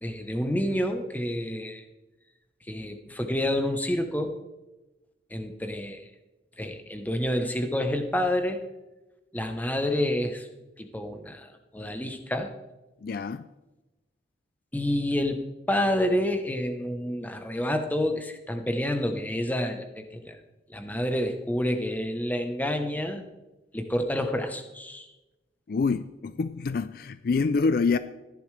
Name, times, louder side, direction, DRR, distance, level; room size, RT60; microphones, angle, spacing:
voice 1, 0.0-1.8 2.7-4.4 5.3-6.0 6.6-8.6 9.3-10.5 10.8-12.5 14.7-20.4 20.7-23.2 23.7-25.1, left 1 dB, 10° left, 6 dB, 0.9 m, -28 dB
voice 2, 13.0-13.5 25.7-28.0, left 4 dB, 50° left, 13 dB, 0.4 m, -26 dB
14.5 x 10.5 x 3.3 m, 1.1 s
head